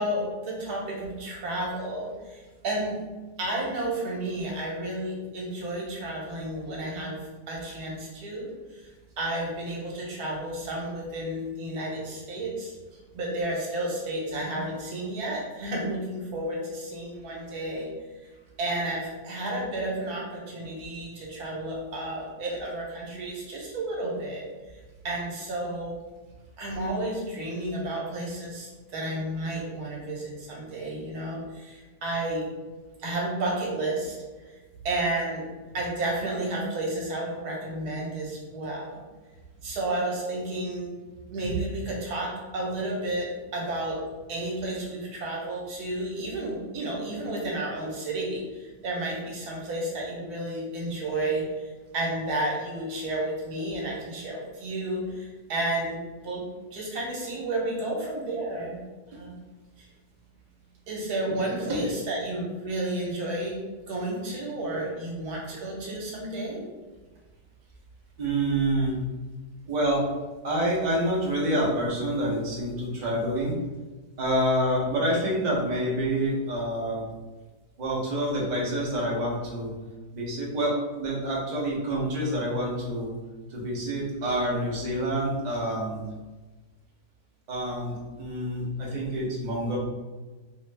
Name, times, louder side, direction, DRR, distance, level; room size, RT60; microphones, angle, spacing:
voice 1, 0.0-3.0 3.4-7.2 7.5-8.8 9.2-12.7 13.1-17.9 18.6-24.4 25.0-25.9 26.6-32.5 33.0-34.1 34.8-35.4 35.7-39.0 39.6-40.9 41.3-44.0 44.3-51.6 51.9-56.4 56.7-58.8 59.2-59.3 60.9-63.6 63.9-66.6, right 1 dB, 70° right, -3 dB, 1.3 m, -31 dB
voice 2, 68.2-68.9 69.7-70.0 70.4-73.5 74.2-77.0 77.8-79.7 80.1-83.1 83.5-86.0 87.5-89.8, right 1 dB, 50° right, -4 dB, 0.5 m, -27 dB
3.0 x 2.4 x 3.2 m, 1.2 s
omnidirectional pair, 1.8 m